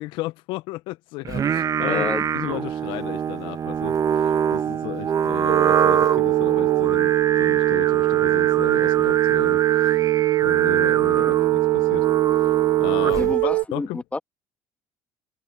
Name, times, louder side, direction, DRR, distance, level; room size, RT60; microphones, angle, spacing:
voice 1, 0.0-10.0 10.4-11.3 11.7-12.1 12.4-12.5 12.8-14.0, left 20 dB, 70° left, 1.0 m, -34 dB
Singing, 1.3-13.4, right 8 dB, 40° right, 1.2 m, -24 dB
voice 2, 1.8-2.3 11.2-11.3 13.2-14.2, left 2 dB, 15° left, 2.0 m, -29 dB
sound 1, 5.5-13.6, right 23 dB, 70° right, 0.8 m, -21 dB
hypercardioid pair, 65°, 9 cm